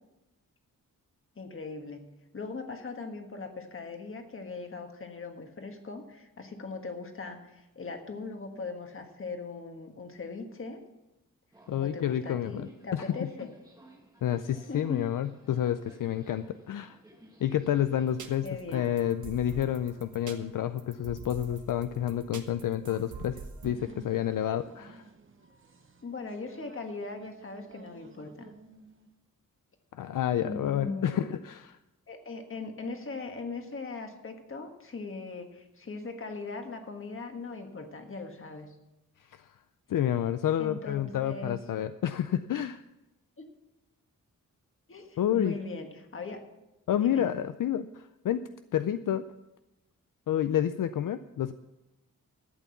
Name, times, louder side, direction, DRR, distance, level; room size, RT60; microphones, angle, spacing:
voice 1, 1.3-2.0 2.3-10.8 11.7-13.5 14.7-15.0 18.4-18.9 26.0-28.5 30.4-31.3 32.1-38.8 40.6-41.6 43.4-43.5 44.9-46.4 47.0-47.3, left 3 dB, 40° left, 5 dB, 1.5 m, -40 dB
Subway metro underground, 11.5-18.4, right 1 dB, 10° right, 1.4 m, -55 dB
voice 2, 11.7-13.0 14.2-17.0 17.4-18.5 18.7-25.0 29.9-31.8 39.3-39.5 39.9-42.8 45.2-45.6 46.9-49.3 50.3-51.5, left 10 dB, 70° left, 11 dB, 0.5 m, -29 dB
sound 1, 18.1-23.7, right 5 dB, 60° right, 1.3 m, -46 dB
sound 2, 23.6-29.1, right 3 dB, 35° right, 1.0 m, -52 dB
12.5 x 8.4 x 7.0 m, 0.98 s
wide cardioid pair, 175°, 33 cm